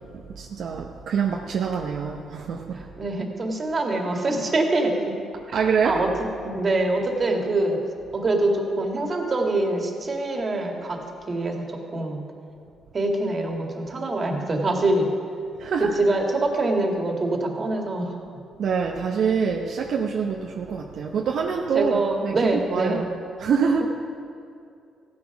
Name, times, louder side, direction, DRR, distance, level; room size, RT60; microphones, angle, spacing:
voice 1, 0.3-2.8 5.5-6.0 15.6-15.9 18.6-23.0 23.4-23.9, right 6 dB, 65° right, 1 dB, 0.9 m, -25 dB
voice 2, 2.7-5.1 5.5-6.1 6.4-7.8 8.1-11.0 11.3-12.2 12.9-15.1 15.8-18.1 21.7-23.1 23.8-23.9, right 2 dB, 35° right, 2 dB, 2.1 m, -24 dB
15.0 x 9.6 x 6.0 m, 2.5 s
cardioid pair, 90°, 0 cm